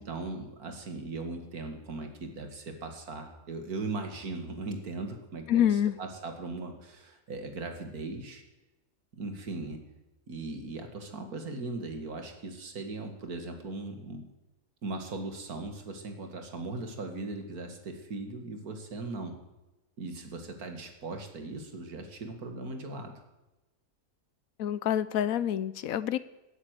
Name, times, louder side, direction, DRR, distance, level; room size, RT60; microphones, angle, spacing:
voice 1, 0.0-5.7 6.0-8.4 9.1-9.8 10.3-14.3 14.8-19.3 20.0-23.1, right 3 dB, 85° right, 5 dB, 2.4 m, -38 dB
voice 2, 5.5-6.0 24.6-26.2, left 10 dB, 75° left, 16 dB, 1.1 m, -27 dB
17.0 x 8.5 x 8.1 m, 1.0 s
omnidirectional pair, 1.5 m